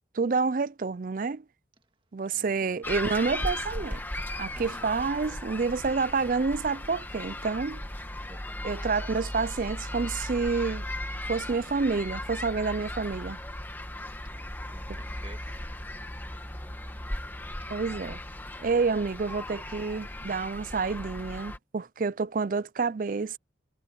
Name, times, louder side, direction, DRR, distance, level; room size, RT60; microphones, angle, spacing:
voice 1, 0.1-1.4 2.1-4.0 4.4-7.8 8.6-10.8 11.3-13.4 17.7-18.2 18.6-23.4, right 4 dB, 45° right, 0.4 m, -28 dB
voice 2, 2.3-2.9 4.5-4.9 7.7-7.9 8.2-8.7 14.2-15.7 17.9-18.2, right 1 dB, 25° right, 1.8 m, -52 dB
sound 1, 2.8-21.6, left 1 dB, 10° left, 1.5 m, -37 dB
head